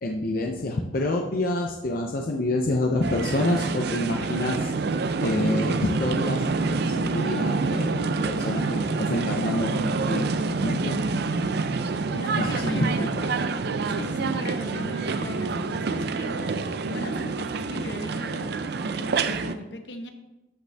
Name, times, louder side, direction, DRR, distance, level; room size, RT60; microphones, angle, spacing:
voice 1, 0.0-11.0 12.3-13.3, left 1 dB, 55° left, 2 dB, 0.6 m, -28 dB
sound 1, 3.0-19.5, right 3 dB, 65° right, 0.5 m, -27 dB
voice 2, 12.1-13.3 13.9-16.6 16.9-18.6 18.9-20.1, left 1 dB, 70° left, 6 dB, 1.0 m, -38 dB
13.0 x 5.2 x 3.5 m, 1.0 s
head